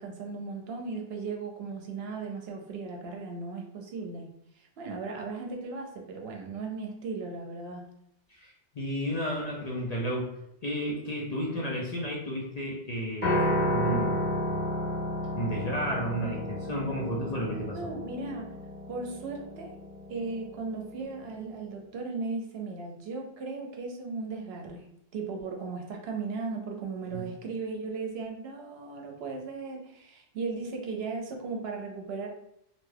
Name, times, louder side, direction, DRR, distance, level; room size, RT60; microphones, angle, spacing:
voice 1, 0.0-7.9 17.7-18.5 18.9-19.7 20.1-24.9 25.1-32.3, right 4 dB, 70° right, 1 dB, 0.8 m, -37 dB
voice 2, 8.4-14.5 15.3-17.8 27.1-27.2, equal, 45° left, -3 dB, 0.6 m, -32 dB
Piano, 13.2-21.5, left 1 dB, 10° left, 1.2 m, -32 dB
2.7 x 2.2 x 3.2 m, 0.76 s
omnidirectional pair, 1.1 m